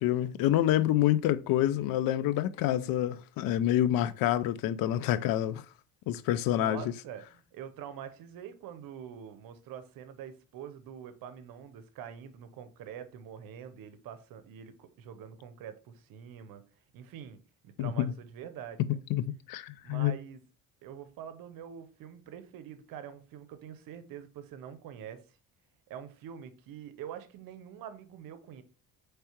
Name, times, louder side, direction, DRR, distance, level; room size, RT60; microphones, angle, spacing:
voice 1, 0.0-5.6 6.1-6.8 17.8-18.1 19.1-20.1, left 12 dB, 80° left, 0.5 m, -27 dB
voice 2, 6.6-16.6 16.9-18.8 19.8-20.4 20.8-25.2 25.9-28.6, right 9 dB, 75° right, 0.7 m, -45 dB
4.6 x 3.3 x 2.8 m
cardioid pair, 95°, 34 cm